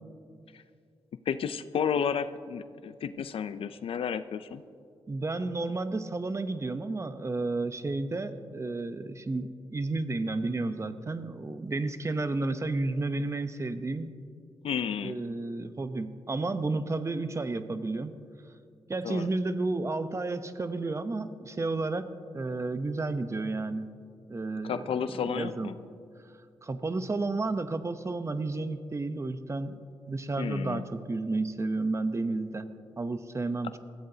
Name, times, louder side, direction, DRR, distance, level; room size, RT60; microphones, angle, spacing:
voice 1, 1.3-4.6 14.6-15.2 19.0-19.3 24.6-25.8 30.4-30.8, left 7 dB, 75° left, 12 dB, 0.5 m, -32 dB
voice 2, 5.1-14.1 15.0-18.2 18.9-23.9 24.3-24.8 25.3-25.7 26.6-29.8 30.1-33.8, right 3 dB, 30° right, 10 dB, 0.8 m, -32 dB
20.0 x 14.5 x 2.8 m, 2.3 s
cardioid pair, 70°, 10 cm